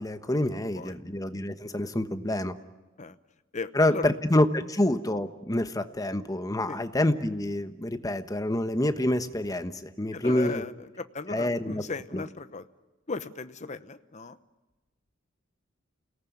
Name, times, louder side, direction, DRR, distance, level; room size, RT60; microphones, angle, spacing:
voice 1, 0.0-2.5 3.7-10.6 11.3-11.8 12.1-12.2, left 1 dB, 20° left, 9 dB, 1.2 m, -27 dB
voice 2, 0.5-1.0 3.0-3.2 3.5-4.1 6.6-6.8 10.1-12.7 13.1-14.4, left 3 dB, 35° left, 11 dB, 0.9 m, -37 dB
29.0 x 18.5 x 9.5 m, 1.2 s
head